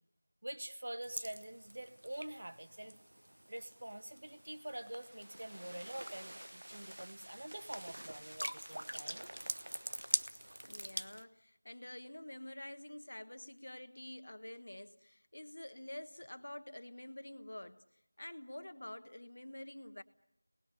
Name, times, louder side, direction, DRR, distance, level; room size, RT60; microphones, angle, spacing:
voice 1, 0.4-3.0 3.5-9.3, right 1 dB, 40° right, 1.2 m, -46 dB
sound 1, 1.0-11.2, right 1 dB, 85° right, 1.0 m, -44 dB
voice 2, 10.6-17.8 18.2-20.0, left 1 dB, 45° left, 1.3 m, -48 dB
29.5 x 20.0 x 8.4 m
figure-of-eight pair, 180°, 0 cm